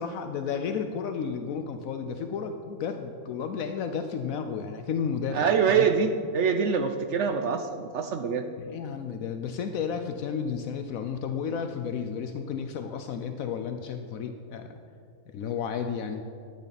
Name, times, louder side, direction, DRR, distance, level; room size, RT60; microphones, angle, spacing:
voice 1, 0.0-5.9 8.6-14.8 15.3-16.2, left 6 dB, 75° left, 6 dB, 1.0 m, -32 dB
voice 2, 5.3-8.5, right 6 dB, 65° right, 7 dB, 0.8 m, -25 dB
12.0 x 8.3 x 4.1 m, 2.3 s
omnidirectional pair, 1.5 m